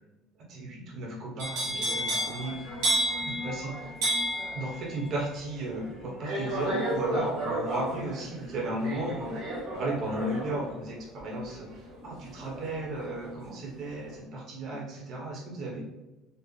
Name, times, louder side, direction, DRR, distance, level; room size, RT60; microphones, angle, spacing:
voice 1, 0.5-2.9 3.2-3.8 4.5-9.4 9.7-15.8, right 2 dB, 45° right, -1 dB, 1.0 m, -35 dB
sound 1, 1.4-13.4 13.7-14.1, right 1 dB, 70° right, 1.4 m, -32 dB
4.4 x 2.0 x 3.2 m, 1.0 s
cardioid pair, 160°, 0 cm